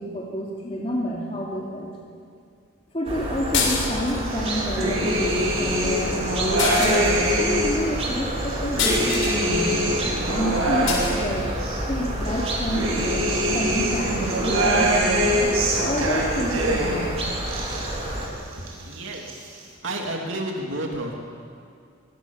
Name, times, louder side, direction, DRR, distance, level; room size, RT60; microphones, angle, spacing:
voice 1, 0.0-1.9 2.9-9.8 10.3-11.5 11.9-15.5 15.8-17.2, equal, 30° left, -4 dB, 2.9 m, -29 dB
sound 1, 3.0-18.3, right 1 dB, 30° right, 4.2 m, -29 dB
sound 2, 3.5-4.3 6.6-7.4 8.8-9.4 10.9-11.1, left 4 dB, 65° left, 6.9 m, -25 dB
sound 3, 4.3-7.9 8.4-11.8 12.3-17.1 17.4-18.3 18.5-19.3, equal, 90° right, 6.5 m, -24 dB
voice 2, 18.9-19.5 19.8-21.1, right 1 dB, 65° right, 0 dB, 2.8 m, -31 dB
24.0 x 22.0 x 7.3 m, 2.2 s
head